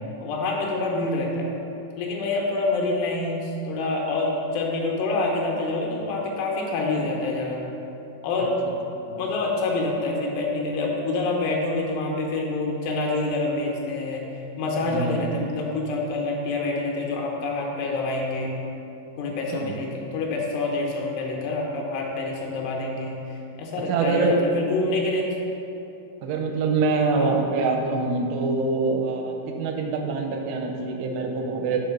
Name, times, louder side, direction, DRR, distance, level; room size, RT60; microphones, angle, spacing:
voice 1, 0.2-1.5 2.0-7.6 8.2-8.6 9.2-14.3 14.6-18.5 19.2-25.4 27.1-27.3, left 2 dB, 90° left, -1 dB, 3.1 m, -27 dB
voice 2, 14.8-15.2 19.5-19.8 23.9-24.4 26.2-31.8, right 3 dB, 90° right, 2 dB, 2.8 m, -25 dB
6.0 x 5.1 x 5.9 m, 2.8 s
omnidirectional pair, 4.8 m